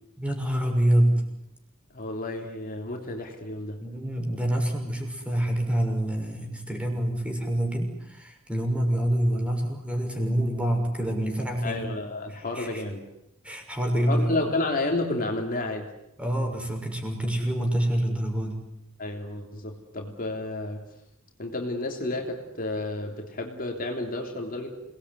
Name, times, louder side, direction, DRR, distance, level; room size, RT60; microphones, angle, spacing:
voice 1, 0.2-1.2 3.8-11.9 12.3-12.8 13.4-14.4 16.2-18.6, right 1 dB, 5° right, 3 dB, 6.3 m, -26 dB
voice 2, 1.9-3.8 11.6-13.0 13.9-15.9 19.0-20.8 21.4-24.7, left 2 dB, 40° left, 2 dB, 3.4 m, -31 dB
28.5 x 20.0 x 9.8 m, 0.83 s
head